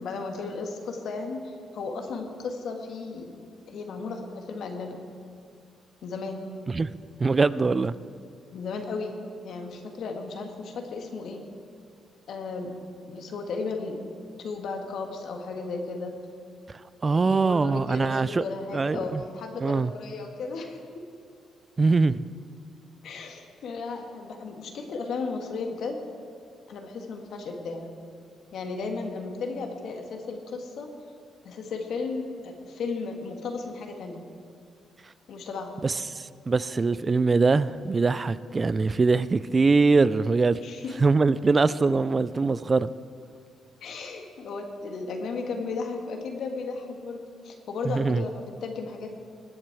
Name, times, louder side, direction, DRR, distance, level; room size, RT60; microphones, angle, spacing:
voice 1, 0.0-3.3 3.7-5.0 6.0-6.5 8.5-9.2 9.4-11.4 12.3-12.7 13.0-14.0 14.4-16.1 17.0-20.8 23.0-26.0 26.7-27.9 28.5-30.9 31.4-34.2 35.3-35.8 40.6-40.9 43.8-49.1, left 4 dB, 70° left, 1.6 m, -35 dB
voice 2, 7.2-7.9 17.0-18.4 18.7-19.2 19.6-19.9 21.8-22.2 35.8-40.6 41.0-42.9 47.9-48.2, right 4 dB, 30° right, 0.3 m, -23 dB
19.5 x 7.6 x 4.7 m
cardioid pair, 90°, 0 cm